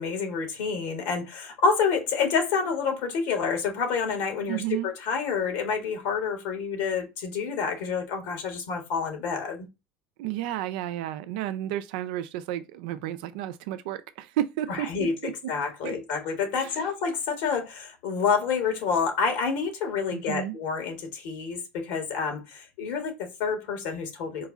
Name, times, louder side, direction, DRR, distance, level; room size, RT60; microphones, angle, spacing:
voice 1, 0.0-9.7 14.7-15.1 15.5-24.5, left 5 dB, 75° left, 1.7 m, -28 dB
voice 2, 4.5-4.9 10.2-15.5 15.8-16.0 16.6-16.9 20.1-20.6, right 13 dB, 80° right, 0.5 m, -32 dB
4.6 x 2.4 x 4.0 m
supercardioid pair, 105°, 5 cm